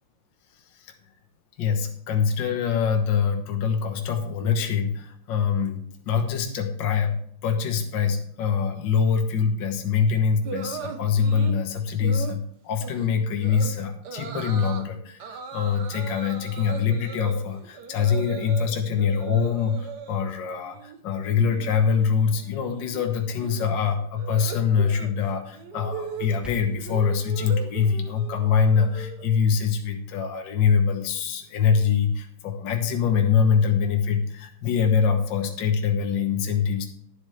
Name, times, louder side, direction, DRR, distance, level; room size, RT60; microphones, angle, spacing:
voice 1, 1.6-36.9, left 6 dB, 60° left, 3 dB, 1.8 m, -24 dB
sound 1, 10.4-11.6 12.0-12.4 12.8-13.1 13.4-13.7 14.0-14.8 15.2-18.7 18.9-20.2 20.6-21.0 21.2-29.4, right 6 dB, 55° right, 1.5 m, -38 dB
sound 2, 26.0-27.0, left 1 dB, ahead, 0.9 m, -44 dB
11.0 x 11.0 x 3.3 m, 0.64 s
omnidirectional pair, 2.4 m